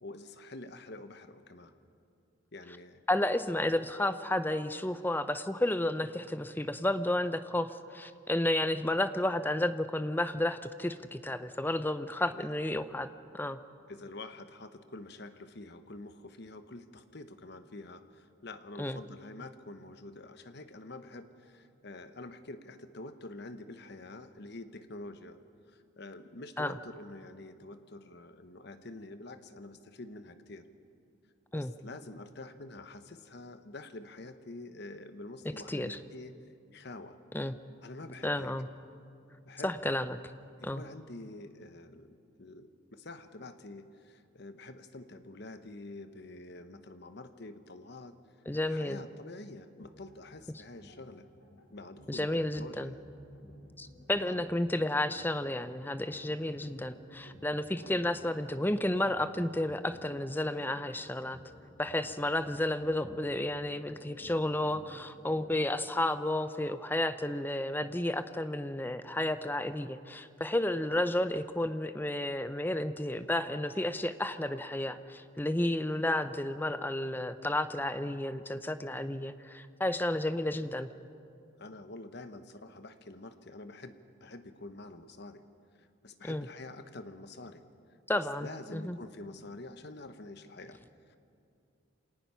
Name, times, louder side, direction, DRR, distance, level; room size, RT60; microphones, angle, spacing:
voice 1, 0.0-1.7 2.5-3.0 12.2-12.5 13.9-25.4 25.7-30.7 31.5-36.4 36.7-37.2 37.8-38.5 39.4-39.7 40.6-48.2 48.6-51.3 51.7-52.3 52.5-53.1 54.2-54.4 57.8-57.9 75.9-76.1 81.6-83.9 84.2-85.4 85.8-87.6 88.1-90.8 91.1-91.2, left 2 dB, 55° left, 10 dB, 1.0 m, -47 dB
voice 2, 3.1-13.1 13.3-13.6 18.8-19.0 26.6-26.7 31.5-31.7 35.7-36.0 37.3-37.5 38.2-38.7 39.6-40.2 40.6-40.8 48.5-49.0 52.1-52.9 53.8-61.4 61.8-80.9 86.2-86.5 88.1-89.0, left 1 dB, 10° left, 12 dB, 0.6 m, -32 dB
sound 1, 49.8-65.9, equal, 80° left, 3.4 m, -55 dB
26.5 x 18.5 x 5.7 m, 2.5 s
head